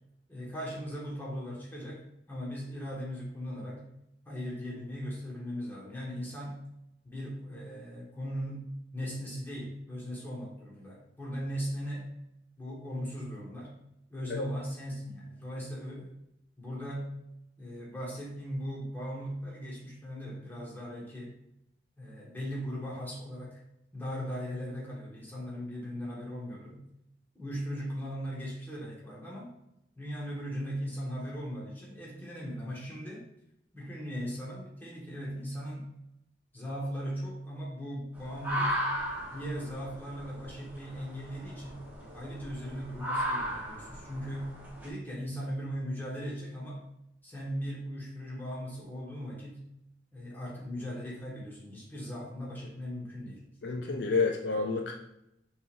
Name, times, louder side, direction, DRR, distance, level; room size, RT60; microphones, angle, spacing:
voice 1, 0.3-3.9 4.2-6.6 7.0-12.1 12.6-13.8 14.1-16.1 16.6-17.1 17.6-21.3 22.0-23.6 23.9-26.8 27.3-29.5 30.0-33.3 33.7-35.9 36.5-38.8 39.3-41.8 42.1-44.5 44.8-46.8 47.2-49.6 50.1-53.4, equal, 10° left, -5 dB, 1.5 m, -38 dB
sound 1, 38.2-44.9, equal, 10° right, 1.1 m, -36 dB
voice 2, 53.6-54.9, left 4 dB, 70° left, 2 dB, 0.5 m, -29 dB
5.8 x 3.5 x 2.6 m, 0.81 s
head